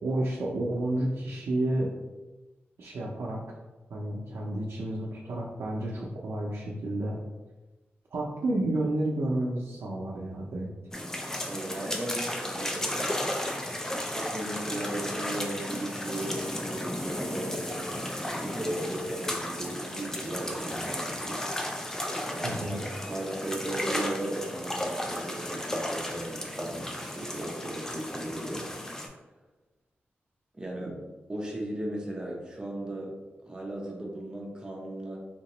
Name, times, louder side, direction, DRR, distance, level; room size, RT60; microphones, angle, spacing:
voice 1, 0.0-1.9 2.8-3.4 3.9-7.2 8.1-10.7 22.4-22.8, right 1 dB, 75° right, -4 dB, 0.5 m, -30 dB
sound 1, 10.9-29.1, left 1 dB, 10° left, 0.4 m, -34 dB
voice 2, 11.4-13.3 13.9-17.9 18.3-21.4 22.2-22.8 23.0-28.7 30.5-31.0 31.3-33.1 33.5-35.2, right 1 dB, 20° right, -2 dB, 0.7 m, -36 dB
3.5 x 2.8 x 3.0 m, 1.2 s
wide cardioid pair, 140°, 4 cm